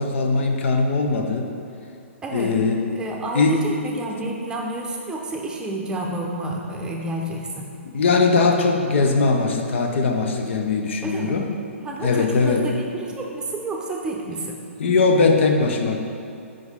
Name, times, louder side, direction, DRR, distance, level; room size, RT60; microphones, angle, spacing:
voice 1, 0.0-1.5 2.3-2.8 3.3-3.6 7.9-11.5 12.0-12.6 14.8-16.0, left 4 dB, 60° left, 3 dB, 0.7 m, -20 dB
voice 2, 2.2-2.5 2.9-7.7 11.0-11.4 11.8-14.6, right 2 dB, 10° right, -1 dB, 0.7 m, -30 dB
6.2 x 4.9 x 3.6 m, 2.6 s
hypercardioid pair, 130°, 7 cm